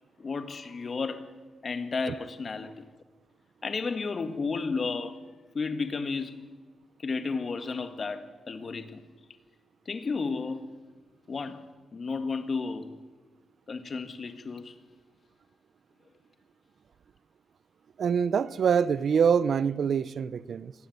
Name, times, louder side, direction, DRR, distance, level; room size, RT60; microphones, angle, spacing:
voice 1, 0.2-1.3 1.6-2.8 3.6-5.2 5.5-6.5 7.0-9.0 9.9-10.7 11.3-12.9 13.7-14.8, left 4 dB, 40° left, 1.8 m, -33 dB
voice 2, 18.0-20.7, right 7 dB, 60° right, 0.7 m, -25 dB
24.5 x 18.5 x 9.5 m
cardioid pair, 120°, 0 cm